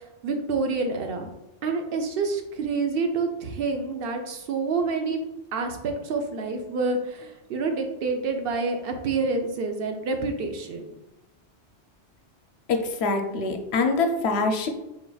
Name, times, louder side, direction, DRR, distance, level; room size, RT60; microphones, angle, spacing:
voice 1, 0.2-1.3 1.6-5.2 5.5-10.9, right 4 dB, 60° right, 4 dB, 0.8 m, -28 dB
voice 2, 12.7-14.7, left 3 dB, 70° left, 5 dB, 0.8 m, -24 dB
4.6 x 4.0 x 2.3 m, 0.92 s
omnidirectional pair, 1.2 m